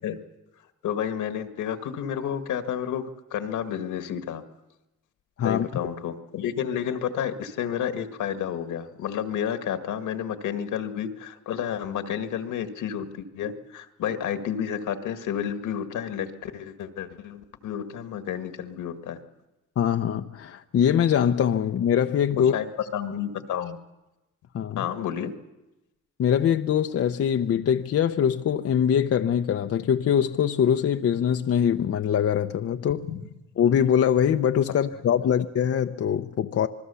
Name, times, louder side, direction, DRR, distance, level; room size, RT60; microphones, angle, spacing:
voice 1, 0.8-4.4 5.4-19.2 22.3-22.7 22.9-23.8 24.8-25.3 33.0-33.2 35.2-35.3, left 9 dB, 80° left, 1.8 m, -31 dB
voice 2, 19.8-22.5 24.5-24.8 26.2-33.1 33.6-36.7, left 8 dB, 50° left, 0.8 m, -23 dB
27.0 x 20.0 x 7.0 m
cardioid pair, 90°, 30 cm